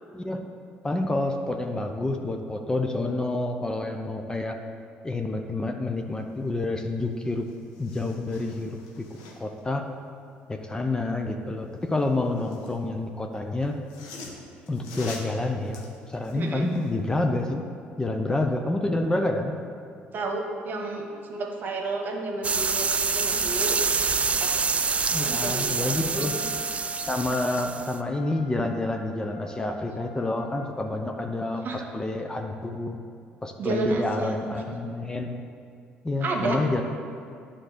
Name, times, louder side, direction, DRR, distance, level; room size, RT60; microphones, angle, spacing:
voice 1, 0.8-4.6 5.0-7.5 7.8-9.0 9.4-9.8 10.5-13.7 14.7-17.6 18.0-19.6 25.1-26.3 27.1-33.0 33.4-35.4 36.0-36.8, left 2 dB, 15° left, 4 dB, 0.7 m, -28 dB
sound 1, 7.0-7.1 7.4-9.6 11.8-12.8 13.6-17.0 17.4-17.5, left 3 dB, 85° left, 1.1 m, -45 dB
voice 2, 16.3-16.7 20.1-23.8 24.4-24.5 25.2-26.4 31.6-31.8 33.6-34.5 36.2-36.6, right 3 dB, 50° right, 2 dB, 1.3 m, -31 dB
sound 2, 22.4-28.0, right 5 dB, 30° right, 0.4 m, -26 dB
Wind instrument woodwind instrument, 26.1-30.7, left 2 dB, 65° left, 0.7 m, -45 dB
9.1 x 3.8 x 6.7 m, 2.3 s
supercardioid pair, 80°, 4 cm